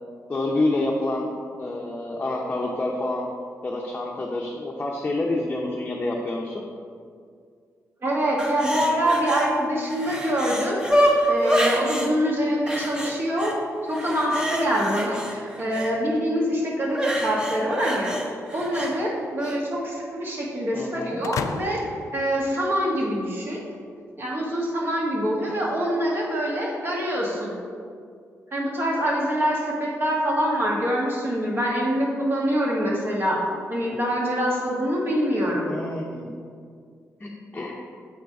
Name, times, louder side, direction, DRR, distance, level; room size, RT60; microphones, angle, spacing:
voice 1, 0.3-1.3 1.6-3.2 3.6-6.6 20.7-21.2 35.7-36.3 37.2-37.7, left 2 dB, 25° left, -2 dB, 0.7 m, -28 dB
voice 2, 8.0-10.8 11.3-13.6 13.8-18.1 18.5-21.8 22.1-23.6 24.2-27.5 28.5-33.4 33.7-35.7, equal, 40° right, -3 dB, 1.7 m, -25 dB
sound 1, 8.4-9.5 9.8-12.1 12.7-13.6 13.9-15.9 16.9-18.9 19.4-19.6, equal, 15° right, 1.0 m, -26 dB
sound 2, 21.2-23.2, left 6 dB, 70° left, 0.3 m, -34 dB
7.7 x 3.9 x 4.6 m, 2.2 s
cardioid pair, 95°, 6 cm